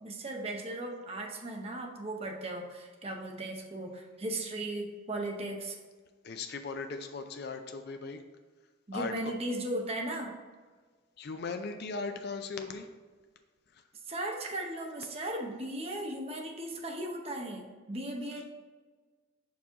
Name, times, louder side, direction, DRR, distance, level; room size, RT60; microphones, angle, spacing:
voice 1, 0.0-5.8 8.9-10.4 14.0-18.5, right 1 dB, 30° right, 1 dB, 0.8 m, -37 dB
voice 2, 6.2-8.2 8.9-9.3 11.2-12.9 13.7-13.8, left 4 dB, 55° left, 6 dB, 0.5 m, -38 dB
5.4 x 4.8 x 3.6 m, 1.4 s
head